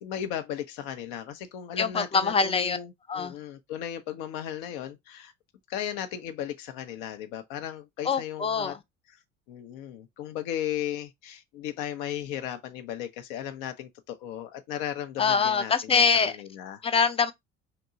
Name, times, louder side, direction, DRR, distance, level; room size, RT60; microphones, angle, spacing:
voice 1, 0.0-5.3 5.7-8.8 9.5-16.8, left 10 dB, 60° left, 0.6 m, -36 dB
voice 2, 1.8-2.8 3.1-3.4 8.0-8.8 15.2-16.4 16.8-17.3, left 5 dB, 15° left, 0.4 m, -24 dB
2.8 x 2.2 x 3.8 m
figure-of-eight pair, 60°, 38 cm